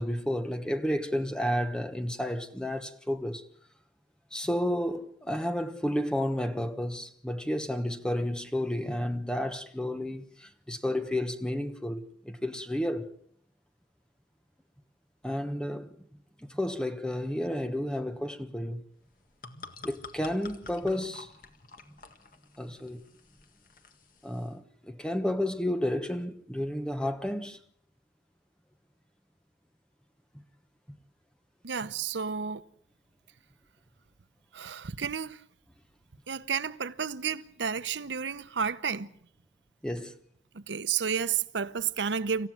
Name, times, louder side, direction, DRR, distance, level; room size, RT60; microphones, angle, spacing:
voice 1, 0.0-3.4 4.3-13.1 15.2-16.0 16.4-18.8 19.8-21.3 22.6-23.0 24.2-27.6 39.8-40.2, left 1 dB, 5° left, 1.1 m, -31 dB
sound 1, 19.1-24.5, left 4 dB, 50° left, 1.8 m, -50 dB
voice 2, 31.6-32.6 34.5-35.4 36.3-39.1 40.5-42.5, right 6 dB, 80° right, 0.8 m, -31 dB
26.5 x 15.0 x 7.7 m
head